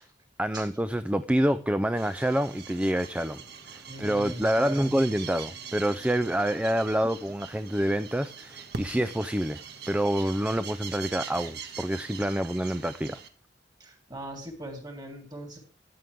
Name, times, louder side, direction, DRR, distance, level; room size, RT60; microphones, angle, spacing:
voice 1, 0.4-3.4 3.7-9.6 9.9-13.2, right 1 dB, 5° right, 0.4 m, -27 dB
sound 1, 2.0-13.3, right 6 dB, 65° right, 1.6 m, -43 dB
voice 2, 3.9-4.9 13.8-15.6, right 1 dB, 25° right, 3.5 m, -40 dB
14.0 x 9.3 x 3.5 m
head